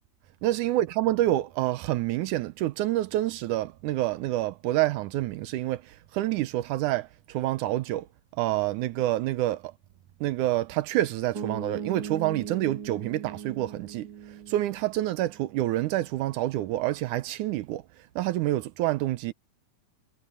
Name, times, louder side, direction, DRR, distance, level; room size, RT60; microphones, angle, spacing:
voice 1, 0.4-8.1 8.4-9.7 10.2-14.1 14.5-17.8 18.2-19.3, right 15 dB, 75° right, 2.0 m, -27 dB
sound 1, 11.3-15.5, right 7 dB, 45° right, 1.4 m, -39 dB
omnidirectional pair, 3.9 m